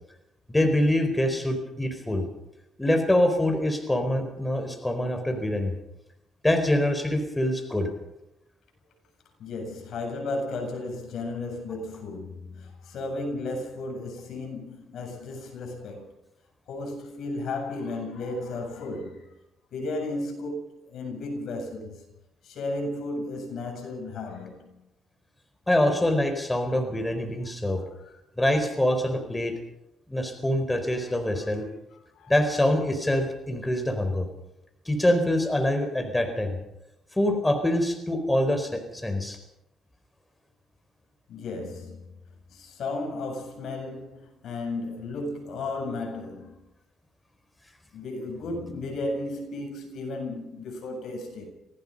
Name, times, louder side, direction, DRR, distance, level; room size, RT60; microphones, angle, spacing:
voice 1, 0.5-2.3 2.8-5.7 6.4-7.9 25.7-27.8 28.4-29.5 30.1-31.6 32.3-34.3 34.9-36.5 37.1-39.4, left 1 dB, 10° left, 4.3 m, -25 dB
voice 2, 9.4-16.1 16.7-19.3 19.7-22.0 22.4-24.8 28.0-28.1 31.3-31.5 32.2-32.3 41.3-42.2 42.5-46.6 47.9-51.5, left 2 dB, 70° left, 7.9 m, -34 dB
26.5 x 18.5 x 5.5 m
cardioid pair, 90°, 0 cm